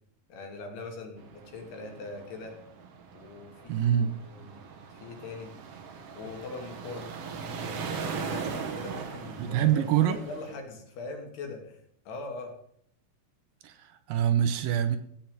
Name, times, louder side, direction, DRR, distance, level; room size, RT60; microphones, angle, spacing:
voice 1, 0.3-2.6 3.1-4.5 4.9-5.5 6.1-7.1 7.6-11.8 12.1-12.6, left 3 dB, 90° left, 2 dB, 4.7 m, -41 dB
sound 1, 1.2-10.6, right 5 dB, 55° right, 1.8 m, -39 dB
voice 2, 3.7-4.2 9.4-10.2 13.6-15.0, right 10 dB, 75° right, 11 dB, 2.3 m, -25 dB
15.5 x 6.0 x 9.1 m, 0.69 s
omnidirectional pair, 4.5 m